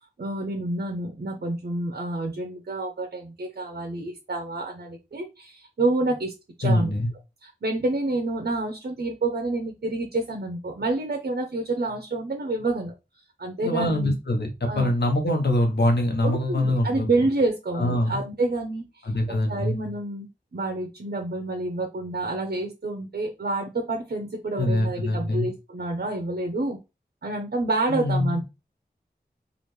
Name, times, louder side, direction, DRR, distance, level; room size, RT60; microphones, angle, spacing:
voice 1, 0.2-6.9 7.4-12.9 13.4-14.1 14.7-14.9 16.2-19.0 19.3-20.3 20.5-26.8 27.2-28.4, right 2 dB, 70° right, 3 dB, 0.8 m, -28 dB
voice 2, 6.6-7.1 13.6-17.1 17.7-18.2 19.0-19.8 24.6-25.5 27.9-28.4, left 1 dB, 80° left, 3 dB, 1.1 m, -24 dB
5.0 x 2.5 x 3.2 m, 0.26 s
wide cardioid pair, 60°, 17 cm